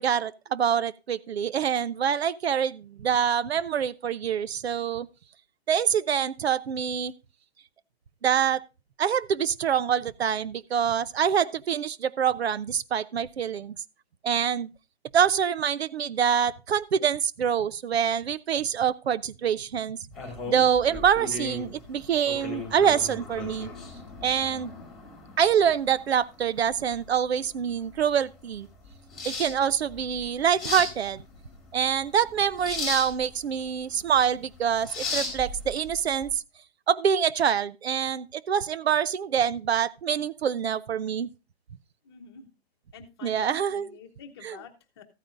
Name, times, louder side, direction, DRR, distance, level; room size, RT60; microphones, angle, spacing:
voice 1, 0.0-5.1 5.7-7.1 8.2-8.6 9.0-13.7 14.2-14.7 15.1-20.0 20.5-23.7 24.2-24.7 25.4-28.7 29.2-31.2 31.7-36.4 36.9-41.3 43.2-43.9 44.4-44.6, right 8 dB, 80° right, 0.7 m, -25 dB
sound 1, 20.1-36.3, left 3 dB, ahead, 2.0 m, -37 dB
voice 2, 42.0-42.5 42.9-45.0, left 6 dB, 25° left, 1.0 m, -48 dB
14.0 x 9.2 x 2.5 m
hypercardioid pair, 170°, 31 cm